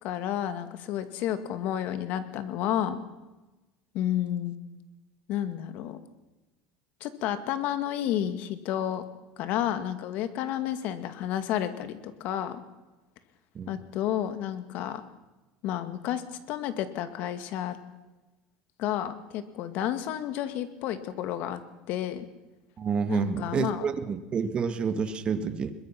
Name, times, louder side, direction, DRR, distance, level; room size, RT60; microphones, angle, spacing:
voice 1, 0.0-3.0 3.9-4.6 5.3-6.0 7.0-9.0 9.4-12.6 13.7-15.0 15.6-16.2 16.5-17.8 18.8-22.3 23.1-23.9, left 11 dB, 60° left, 10 dB, 2.1 m, -31 dB
voice 2, 22.8-25.7, right 6 dB, 30° right, 10 dB, 1.7 m, -29 dB
22.5 x 21.5 x 6.0 m, 1.1 s
supercardioid pair, 130°, 3 cm